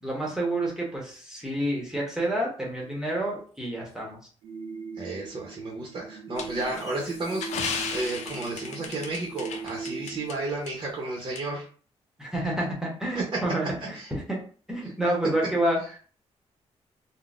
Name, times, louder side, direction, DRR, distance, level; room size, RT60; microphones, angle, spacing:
voice 1, 0.0-4.2 12.2-14.4 14.7-15.8, right 1 dB, 5° right, -3 dB, 1.0 m, -29 dB
sound 1, 4.4-10.3, right 5 dB, 75° right, 0.6 m, -40 dB
voice 2, 5.0-11.7 13.1-13.2 13.8-14.1, right 2 dB, 40° right, -2 dB, 0.7 m, -33 dB
sound 2, 6.4-10.4 10.7-10.8 11.4-11.5, left 5 dB, 80° left, 0.4 m, -35 dB
3.7 x 2.0 x 2.4 m, 0.41 s
cardioid pair, 120°, 12 cm